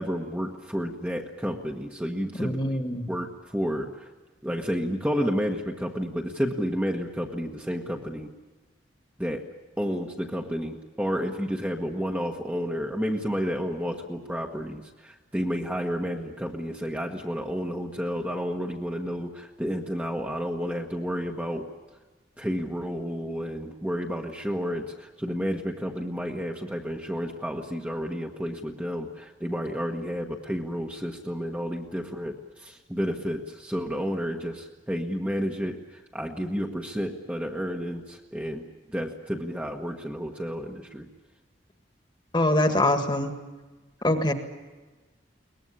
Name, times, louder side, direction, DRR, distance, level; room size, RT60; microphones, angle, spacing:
voice 1, 0.0-2.8 3.1-4.1 4.4-8.3 9.2-9.5 9.8-21.7 22.4-41.1, equal, 10° right, 1 dB, 1.3 m, -31 dB
voice 2, 2.4-3.1 42.3-43.3 44.0-44.3, left 1 dB, 25° left, 6 dB, 1.8 m, -23 dB
22.5 x 20.0 x 9.9 m, 1.2 s
head